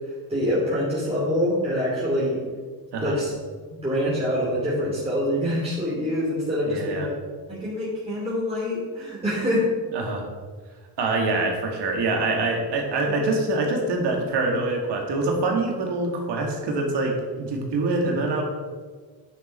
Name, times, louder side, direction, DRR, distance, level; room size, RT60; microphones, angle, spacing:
voice 1, 0.3-2.4 3.0-3.3 3.8-7.1 7.5-9.7, equal, 15° right, -9 dB, 3.1 m, -25 dB
voice 2, 6.7-7.1 9.9-10.3 11.0-18.4, right 2 dB, 75° right, 1 dB, 2.2 m, -25 dB
9.7 x 6.8 x 4.4 m, 1.5 s
cardioid pair, 90°, 42 cm